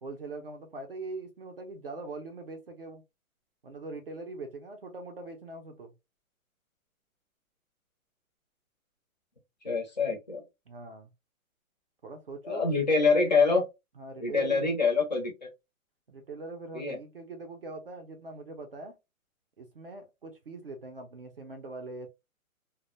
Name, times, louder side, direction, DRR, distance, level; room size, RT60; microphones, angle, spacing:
voice 1, 0.0-3.0 3.6-5.9 10.7-11.1 12.0-12.7 14.0-14.7 16.1-18.9 19.6-22.1, right 2 dB, 45° right, 0.4 m, -42 dB
voice 2, 9.6-10.4 12.5-13.6 14.2-15.5 16.7-17.0, left 4 dB, 30° left, 0.5 m, -25 dB
2.1 x 2.0 x 2.9 m
hypercardioid pair, 165°, 43 cm